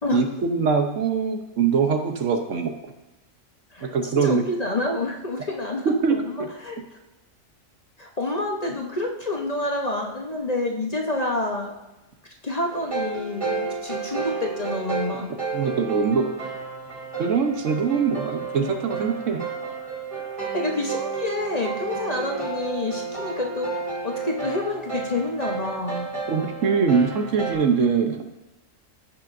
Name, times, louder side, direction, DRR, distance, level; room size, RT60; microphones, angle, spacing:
voice 1, 0.1-2.7 3.8-4.4 5.8-6.5 15.5-16.3 17.2-19.5 26.3-28.2, right 5 dB, 70° right, 5 dB, 1.2 m, -23 dB
voice 2, 4.2-6.8 8.0-11.8 12.4-15.3 20.5-23.7 24.0-26.1, left 2 dB, 35° left, 1 dB, 0.9 m, -28 dB
sound 1, 12.7-27.5, right 4 dB, 25° right, 2.9 m, -31 dB
15.5 x 5.9 x 2.6 m, 1.1 s
omnidirectional pair, 1.4 m